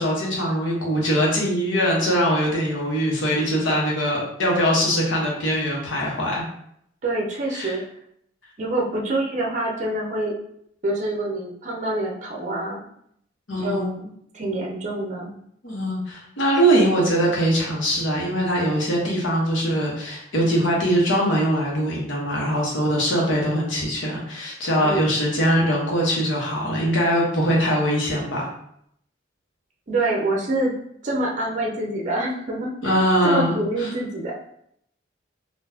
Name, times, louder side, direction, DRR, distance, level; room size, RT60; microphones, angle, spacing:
voice 1, 0.0-6.4 7.5-7.8 13.5-13.9 15.6-28.5 32.8-33.9, equal, 75° left, -3 dB, 1.1 m, -22 dB
voice 2, 7.0-7.8 8.6-10.4 10.8-12.8 13.6-15.4 24.8-25.1 29.9-30.7 31.0-32.9 33.2-34.4, right 1 dB, 40° right, -1 dB, 0.6 m, -26 dB
4.0 x 2.5 x 2.8 m, 0.71 s
head